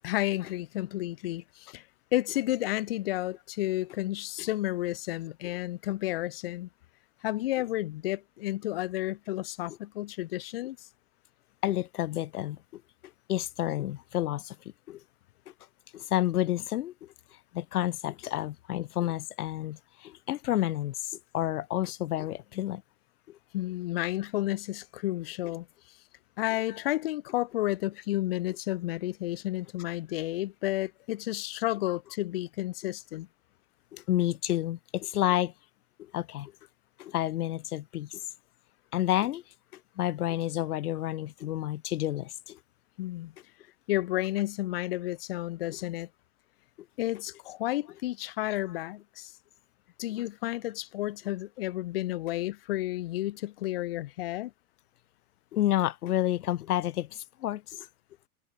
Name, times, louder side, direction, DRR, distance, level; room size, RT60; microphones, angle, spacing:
voice 1, 0.0-1.8 2.1-6.7 7.2-10.9 23.5-25.7 26.4-33.3 43.0-43.3 43.9-46.1 47.0-49.3 50.0-54.5, left 16 dB, 40° left, 0.6 m, -31 dB
voice 2, 11.6-12.6 13.3-14.6 14.9-15.0 15.9-16.9 17.5-19.8 20.0-22.8 25.4-25.5 26.7-26.8 33.9-35.5 36.1-36.5 37.0-38.1 38.9-39.4 40.0-42.6 55.5-57.1 57.4-57.9, left 13 dB, 80° left, 1.1 m, -29 dB
supercardioid pair, 170°, 44 cm